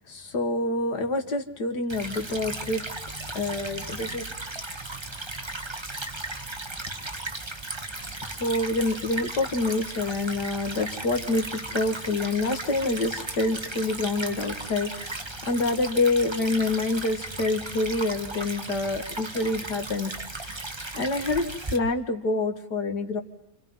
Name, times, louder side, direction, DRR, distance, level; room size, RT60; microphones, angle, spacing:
voice 1, 0.0-2.9 3.3-4.3 8.3-20.6 20.9-23.2, left 2 dB, 90° left, 6 dB, 2.6 m, -27 dB
Stream / Trickle dribble, 1.9-21.8, right 2 dB, 15° right, 1.5 m, -36 dB
29.5 x 28.5 x 5.6 m, 0.83 s
omnidirectional pair, 1.7 m